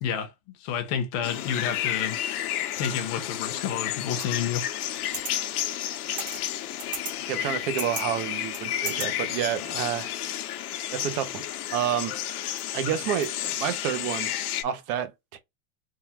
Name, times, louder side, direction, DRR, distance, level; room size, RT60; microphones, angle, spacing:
voice 1, 0.0-2.2 2.8-4.6, left 8 dB, 35° left, 0.9 m, -30 dB
sound 1, 1.2-14.6, left 12 dB, 80° left, 1.0 m, -31 dB
sound 2, 4.2-4.3 4.9-5.3 6.1-6.5 6.8-7.1 7.5-8.0 8.5-9.1, right 3 dB, 20° right, 0.9 m, -35 dB
voice 2, 7.3-10.1 10.9-11.5 11.7-12.1 12.7-14.3 14.6-15.4, right 10 dB, 35° right, 0.6 m, -29 dB
3.7 x 2.3 x 4.2 m
supercardioid pair, 170°, 44 cm